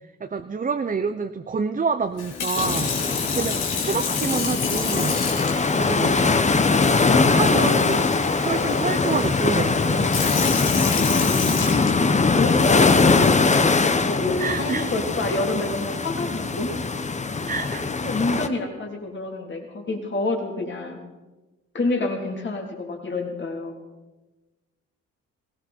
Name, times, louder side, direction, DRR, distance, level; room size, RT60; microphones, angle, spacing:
voice 1, 0.2-2.9 3.3-3.6 3.9-5.2 5.8-6.2 7.1-8.1 8.4-10.1 14.4-14.9 17.5-18.0, right 5 dB, 25° right, 7 dB, 0.8 m, -27 dB
Sink (filling or washing) / Fill (with liquid), 2.2-12.4 13.1-13.3, left 6 dB, 90° left, 2.9 m, -31 dB
sound 1, 2.6-18.5, left 4 dB, 25° left, 1.0 m, -21 dB
voice 2, 10.6-11.5 12.4-13.3 14.1-16.8 18.0-21.0 21.7-23.7, left 2 dB, 40° left, 0 dB, 3.5 m, -28 dB
18.5 x 17.5 x 4.5 m, 1.2 s
cardioid pair, 90°, 30 cm